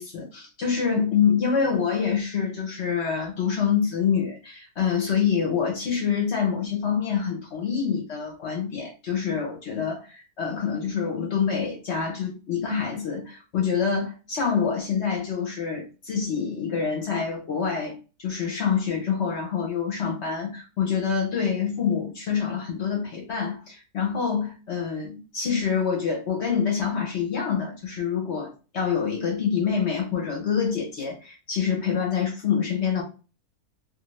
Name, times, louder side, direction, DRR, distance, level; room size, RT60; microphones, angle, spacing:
voice 1, 0.0-17.9 18.2-33.0, left 6 dB, 55° left, 0.8 m, -26 dB
2.7 x 2.5 x 3.0 m
omnidirectional pair, 1.7 m